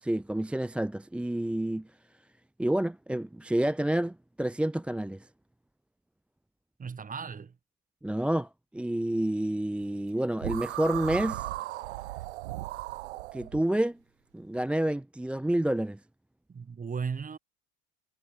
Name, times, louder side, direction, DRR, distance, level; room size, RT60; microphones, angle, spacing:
voice 1, 0.0-1.9 2.6-5.3 8.0-11.5 13.3-14.0 14.3-16.0, right 1 dB, 5° right, 0.5 m, -29 dB
voice 2, 6.8-7.6 16.5-17.4, right 6 dB, 25° right, 3.4 m, -36 dB
sound 1, 10.4-13.6, right 17 dB, 90° right, 1.5 m, -36 dB
supercardioid pair, 95°, 33 cm